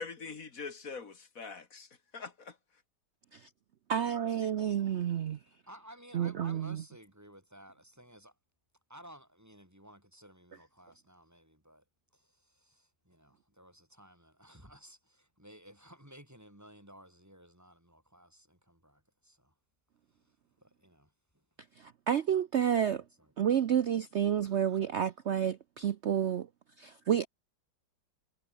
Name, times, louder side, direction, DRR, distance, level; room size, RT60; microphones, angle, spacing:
voice 1, 0.0-2.6, left 4 dB, 50° left, 2.3 m, -43 dB
voice 2, 3.9-5.4 6.1-6.8 21.8-23.0 23.4-26.5 26.8-27.3, right 9 dB, 75° right, 0.6 m, -30 dB
voice 3, 5.5-8.4 8.9-11.8 12.1-19.5 20.1-21.5 23.2-23.7 24.4-24.8, equal, 10° right, 7.6 m, -56 dB
omnidirectional pair, 2.0 m